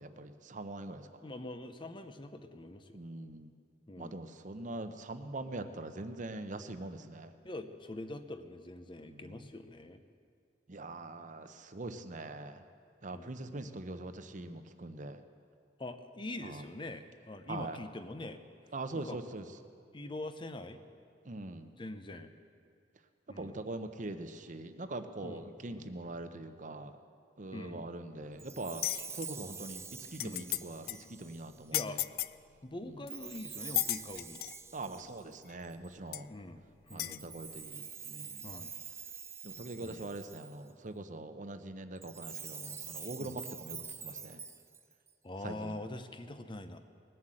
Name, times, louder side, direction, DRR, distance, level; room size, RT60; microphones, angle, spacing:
voice 1, 0.0-1.1 2.9-3.5 4.0-7.3 9.0-9.5 10.7-12.6 13.0-15.2 16.4-16.6 17.5-17.8 18.7-19.5 21.2-21.7 23.4-27.0 27.4-32.0 32.8-33.0 34.7-36.3 36.9-38.5 39.4-44.4 45.4-45.8, right 2 dB, 45° right, 9 dB, 0.8 m, -43 dB
voice 2, 1.2-3.0 3.9-4.2 7.4-10.0 13.1-13.3 15.8-18.4 18.9-19.2 19.9-20.8 21.8-22.3 23.3-23.6 25.2-25.4 25.7-25.9 27.5-27.9 30.2-30.5 31.7-32.0 32.6-34.4 36.3-37.3 38.4-38.7 39.8-40.1 43.2-43.4 45.2-46.8, left 2 dB, 30° left, 9 dB, 0.7 m, -44 dB
Chime, 28.4-31.7 33.1-35.9 36.9-40.7 42.0-45.1, right 6 dB, 15° right, 0.5 m, -46 dB
sound 1, 28.8-29.3 29.8-29.9 30.1-30.6 30.9-31.0 31.7-32.3 33.1-33.2 33.8-34.6 35.5-35.6 36.1-36.2 37.0-37.2, left 15 dB, 55° left, 0.3 m, -34 dB
19.5 x 7.8 x 7.6 m, 2.3 s
head